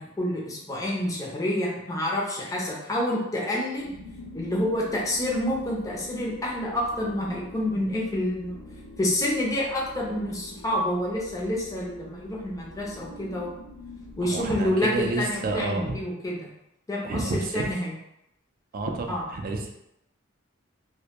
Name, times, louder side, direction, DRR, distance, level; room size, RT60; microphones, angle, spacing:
voice 1, 0.0-3.9 4.3-8.5 9.0-13.5 14.2-16.5 16.9-17.9 19.1-19.2, left 1 dB, 15° left, -4 dB, 0.4 m, -28 dB
sound 1, 3.7-15.7, left 2 dB, 75° left, 0.6 m, -45 dB
voice 2, 14.2-16.0 17.0-17.7 18.7-19.7, right 3 dB, 45° right, 2 dB, 0.3 m, -30 dB
2.1 x 2.1 x 2.8 m, 0.82 s
head